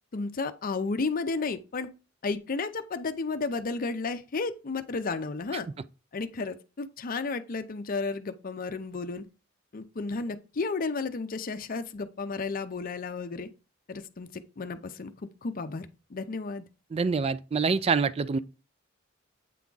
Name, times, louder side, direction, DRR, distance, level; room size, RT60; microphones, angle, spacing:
voice 1, 0.1-1.9 2.2-5.7 6.1-9.3 9.7-13.5 13.9-15.1 15.4-16.6, left 4 dB, 45° left, 0.5 m, -33 dB
voice 2, 16.9-18.4, right 5 dB, 30° right, 0.3 m, -26 dB
8.4 x 3.5 x 3.9 m
head